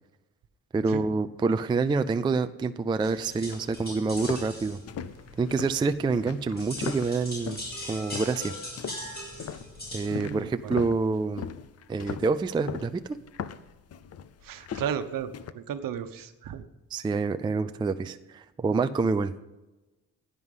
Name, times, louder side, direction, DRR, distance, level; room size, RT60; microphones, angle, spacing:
voice 1, 0.7-4.8 5.4-7.6 7.9-8.5 9.9-11.5 11.9-13.2 16.9-19.3, right 4 dB, 15° right, 10 dB, 0.3 m, -27 dB
sound 1, 3.0-10.2, left 1 dB, 25° left, 6.4 m, -41 dB
sound 2, 3.4-7.7 8.1-8.4 8.8-15.5, left 8 dB, 45° left, 0.6 m, -39 dB
voice 2, 10.1-10.7 14.4-16.6, right 8 dB, 65° right, 9 dB, 1.1 m, -34 dB
16.0 x 9.8 x 5.5 m, 1.1 s
cardioid pair, 170°, 36 cm